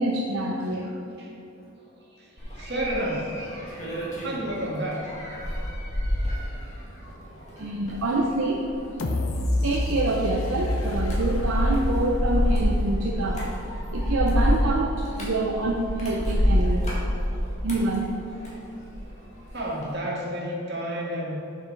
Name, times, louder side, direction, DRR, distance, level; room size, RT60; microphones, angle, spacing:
voice 1, 0.0-1.0 7.6-8.6 9.1-9.3 9.6-13.5 13.8-17.0 17.6-18.1, right 2 dB, 70° right, -1 dB, 0.6 m, -26 dB
voice 2, 1.8-5.1 6.1-7.8 17.2-17.5 19.1-21.4, right 1 dB, 50° right, -4 dB, 1.8 m, -33 dB
sound 1, 2.4-19.1 19.4-19.9, equal, 30° left, 1.7 m, -28 dB
sound 2, 9.0-13.9 14.3-14.4, left 2 dB, 75° left, 0.7 m, -29 dB
8.0 x 5.9 x 4.6 m, 2.9 s
head